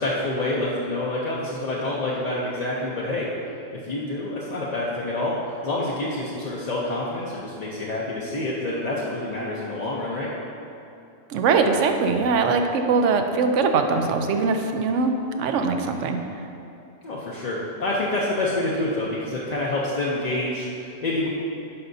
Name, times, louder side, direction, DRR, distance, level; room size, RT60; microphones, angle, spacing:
voice 1, 0.0-3.3 3.7-5.3 5.6-10.3 17.0-21.3, left 2 dB, 45° left, -6 dB, 0.6 m, -27 dB
voice 2, 11.3-15.1 15.4-16.2, right 4 dB, 75° right, 5 dB, 0.9 m, -21 dB
9.7 x 5.5 x 2.7 m, 2.7 s
omnidirectional pair, 1.3 m